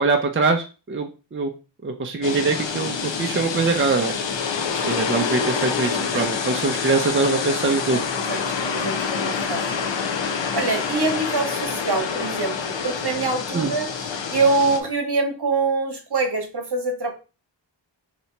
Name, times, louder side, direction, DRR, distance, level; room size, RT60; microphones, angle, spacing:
voice 1, 0.0-1.5 1.8-4.1 4.8-8.0 13.5-13.7, right 3 dB, 25° right, 3 dB, 0.5 m, -23 dB
sound 1, 2.2-14.8, left 6 dB, 70° left, 0.6 m, -27 dB
voice 2, 7.9-9.9 10.5-13.9 14.3-17.1, right 3 dB, 55° right, 4 dB, 1.1 m, -25 dB
2.9 x 2.7 x 4.4 m, 0.32 s
wide cardioid pair, 55°, 46 cm